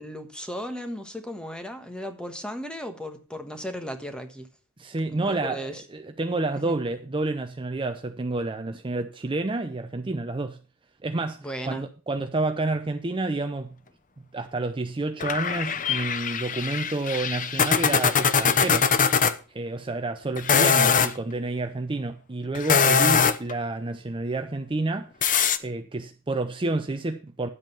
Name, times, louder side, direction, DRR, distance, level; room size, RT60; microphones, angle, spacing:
voice 1, 0.0-4.5 5.1-5.8 6.5-6.8 11.4-11.9, equal, 5° left, 1.3 m, -36 dB
voice 2, 4.8-10.6 11.0-13.7 14.3-18.9 19.5-25.1 25.6-27.5, right 2 dB, 25° right, 0.6 m, -29 dB
sound 1, 15.2-19.3 20.4-21.1 22.5-23.5 25.2-25.6, left 6 dB, 40° left, 0.6 m, -22 dB
11.0 x 7.9 x 5.5 m
head